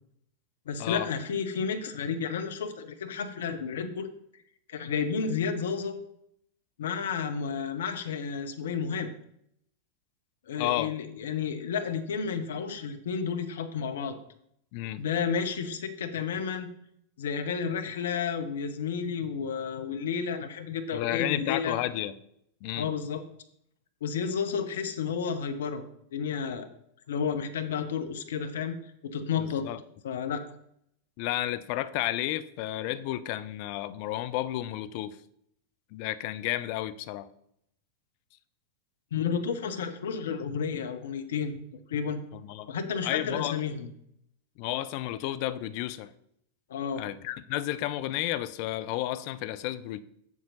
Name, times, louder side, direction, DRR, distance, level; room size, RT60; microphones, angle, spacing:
voice 1, 0.7-4.1 4.7-5.9 6.8-9.1 10.5-14.2 15.0-16.7 17.2-21.8 22.8-23.2 24.0-25.8 26.1-26.7 27.1-28.8 29.0-29.7 30.0-30.4 39.1-41.6 41.9-42.2 42.7-43.9 46.7-47.0, left 6 dB, 60° left, 9 dB, 0.8 m, -31 dB
voice 2, 10.6-10.9 14.7-15.1 20.9-22.1 22.6-22.9 29.4-29.8 31.2-35.2 35.9-37.3 42.3-42.7 43.0-43.6 44.6-46.1 47.0-50.0, left 14 dB, 45° left, 14 dB, 0.5 m, -32 dB
7.4 x 7.3 x 4.0 m, 0.72 s
figure-of-eight pair, 90°, 0 cm